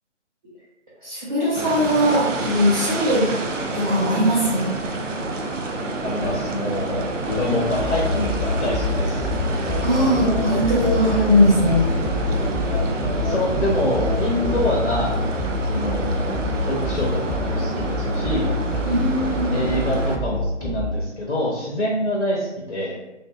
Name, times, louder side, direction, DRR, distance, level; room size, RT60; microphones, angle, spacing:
voice 1, 1.0-3.3 3.7-5.0 9.8-12.0 18.9-19.6, equal, 30° right, -11 dB, 0.7 m, -20 dB
sound 1, 1.5-20.2, right 2 dB, 90° right, 0.5 m, -28 dB
voice 2, 6.0-9.3 13.1-15.2 15.7-16.4 16.7-18.5 19.5-23.0, left 1 dB, 80° left, -3 dB, 0.8 m, -26 dB
sound 2, 6.0-15.0, left 2 dB, 40° left, 0.6 m, -30 dB
sound 3, 7.8-20.9, left 1 dB, 10° right, 1.1 m, -27 dB
2.6 x 2.6 x 2.2 m, 0.97 s
figure-of-eight pair, 150°, 36 cm